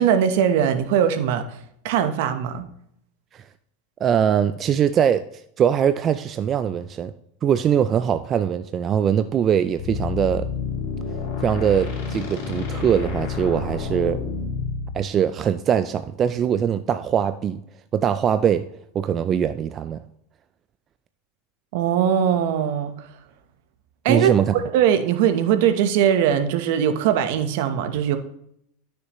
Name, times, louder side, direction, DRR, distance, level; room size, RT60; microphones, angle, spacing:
voice 1, 0.0-1.4 1.8-2.7 21.7-22.9 24.0-24.3 24.7-28.2, right 9 dB, 65° right, 8 dB, 1.0 m, -20 dB
voice 2, 4.0-7.1 7.4-10.5 11.4-14.2 14.9-17.6 17.9-18.6 18.9-20.0 24.1-24.5, right 8 dB, 30° right, 11 dB, 0.3 m, -22 dB
sound 1, 9.8-14.9, left 5 dB, 60° left, 2.9 m, -29 dB
12.0 x 6.6 x 3.1 m, 0.72 s
supercardioid pair, 135°, 0 cm